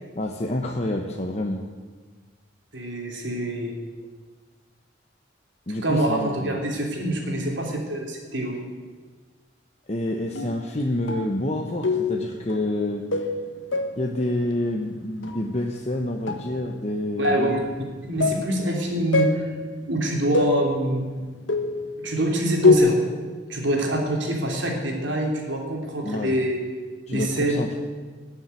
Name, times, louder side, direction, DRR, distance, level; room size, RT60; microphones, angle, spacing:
voice 1, 0.1-1.7 5.7-6.6 9.9-13.1 14.0-17.8 26.0-26.4 27.1-27.7, left 1 dB, 35° left, 1 dB, 1.0 m, -28 dB
voice 2, 2.7-3.7 5.8-8.6 17.2-17.6 18.0-19.4 19.9-21.1 22.0-23.0 23.5-26.6 27.1-27.6, right 1 dB, 75° right, 0 dB, 3.2 m, -25 dB
sound 1, 10.4-10.7 11.1-11.4 11.8-12.2 12.5-12.8 13.1-14.1 15.2-15.4 16.3-16.4 17.2-17.6 18.2-18.5 19.1-19.6 20.3-20.9 21.5-21.9 22.6-22.8, left 3 dB, 85° left, 1.4 m, -23 dB
19.5 x 7.3 x 9.3 m, 1.5 s
head